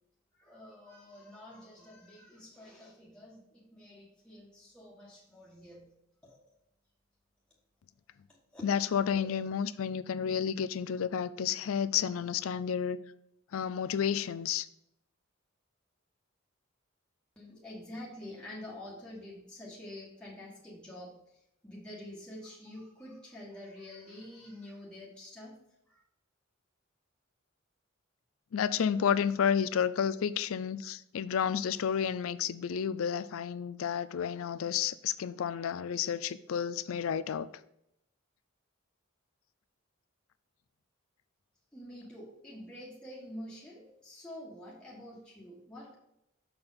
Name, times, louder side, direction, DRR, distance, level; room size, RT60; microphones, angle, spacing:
voice 1, 0.3-5.9 6.2-6.6 8.5-8.7 9.1-9.2 17.3-25.6 25.9-26.0 41.7-45.9, left 1 dB, 5° left, 1.4 m, -47 dB
voice 2, 8.6-13.0 13.5-14.7 28.5-37.5, left 8 dB, 85° left, 0.4 m, -31 dB
6.8 x 4.4 x 5.6 m
head